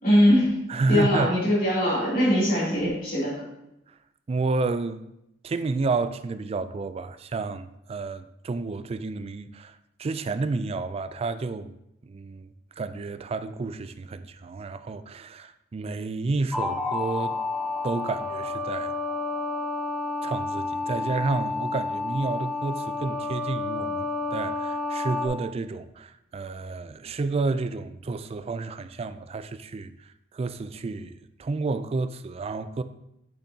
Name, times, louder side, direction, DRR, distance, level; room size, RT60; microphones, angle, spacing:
voice 1, 0.0-0.6 0.9-3.3, equal, 50° left, 2.9 m, -21 dB
voice 2, 0.7-1.3 4.3-5.0 5.4-9.7 10.0-11.7 12.0-17.4 17.8-18.9 20.2-29.9 30.3-32.8, right 3 dB, 30° right, 0.3 m, -30 dB
sound 1, 16.5-25.3, left 3 dB, ahead, 0.8 m, -30 dB
8.4 x 6.5 x 2.7 m
head